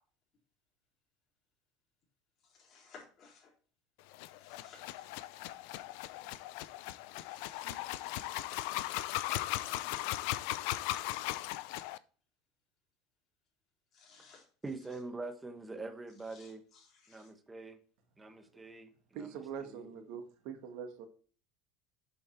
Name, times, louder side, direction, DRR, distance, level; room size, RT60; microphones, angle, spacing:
voice 1, 2.5-3.5 4.4-5.2 7.1-8.7 13.9-14.4 16.3-17.3, left 4 dB, 45° left, 4.0 m, -58 dB
sound 1, 4.1-12.0, left 16 dB, 70° left, 0.4 m, -38 dB
voice 2, 14.6-16.6 17.1-17.8 18.2-18.9 19.2-19.3 19.6-20.2, right 3 dB, 15° right, 1.3 m, -44 dB
voice 3, 19.1-21.1, right 7 dB, 65° right, 1.5 m, -43 dB
7.7 x 5.6 x 4.5 m
hypercardioid pair, 85°, 0 cm